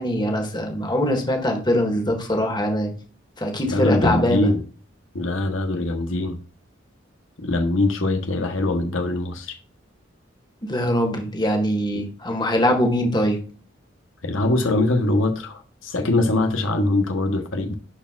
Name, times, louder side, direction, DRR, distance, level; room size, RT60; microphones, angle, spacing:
voice 1, 0.0-2.9 3.4-4.5 10.6-13.4, left 1 dB, 20° left, 3 dB, 1.5 m, -22 dB
voice 2, 3.7-4.6 5.1-6.4 7.4-9.6 14.2-17.7, left 2 dB, 80° left, 5 dB, 1.1 m, -22 dB
11.5 x 4.5 x 2.4 m, 0.38 s
head